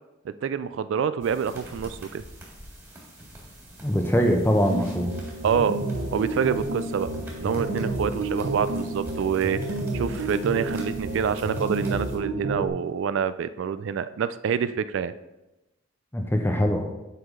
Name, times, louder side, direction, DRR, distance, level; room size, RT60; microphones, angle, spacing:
voice 1, 0.4-2.2 5.4-5.8 6.1-7.1 7.4-9.6 9.9-15.1, right 7 dB, 70° right, 14 dB, 0.3 m, -26 dB
sound 1, 1.2-12.2, equal, 15° right, 1.8 m, -45 dB
voice 2, 3.8-5.1 16.1-16.9, equal, 10° left, 3 dB, 0.7 m, -22 dB
sound 2, 4.7-12.7, right 2 dB, 90° right, 1.1 m, -30 dB
8.1 x 5.7 x 3.7 m, 1.0 s
head